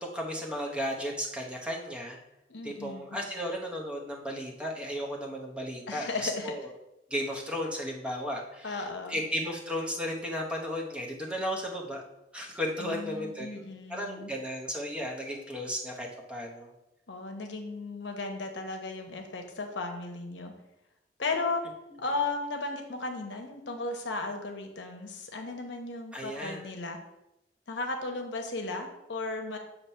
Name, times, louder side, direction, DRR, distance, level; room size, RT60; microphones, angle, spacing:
voice 1, 0.0-2.2 2.6-6.7 7.1-12.0 12.3-13.6 13.9-16.7 26.1-26.7, equal, 5° right, -1 dB, 0.9 m, -34 dB
voice 2, 2.5-3.2 5.9-6.5 8.6-9.2 12.8-14.3 17.1-20.5 21.2-21.6 22.0-27.0 27.7-29.6, left 3 dB, 80° left, 4 dB, 0.9 m, -35 dB
7.2 x 2.9 x 5.5 m, 0.90 s
head